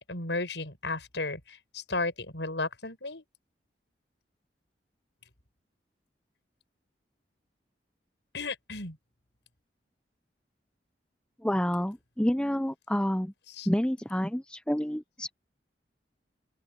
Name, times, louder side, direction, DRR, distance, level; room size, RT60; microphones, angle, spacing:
voice 1, 0.0-3.2 8.3-9.0 13.6-13.7, left 3 dB, 85° left, 6.6 m, -34 dB
voice 2, 11.4-13.3 13.7-15.3, equal, 5° left, 0.8 m, -28 dB
open air
head